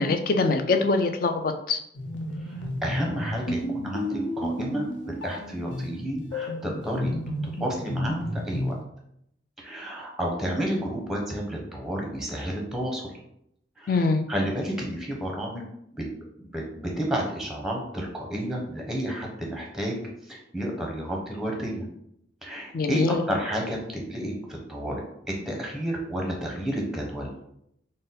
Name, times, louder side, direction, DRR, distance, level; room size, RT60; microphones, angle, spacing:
voice 1, 0.0-1.8 13.9-14.2 22.7-23.2, left 3 dB, 50° left, 6 dB, 0.4 m, -23 dB
sound 1, 1.9-8.8, left 1 dB, 90° left, 0.7 m, -32 dB
voice 2, 2.4-7.1 7.6-8.7 9.6-13.0 13.8-14.0 14.3-15.6 15.9-16.0 16.4-20.0 20.2-21.8 22.4-25.0 25.3-27.3, right 1 dB, ahead, -1 dB, 0.7 m, -31 dB
3.9 x 2.1 x 3.8 m, 0.75 s
head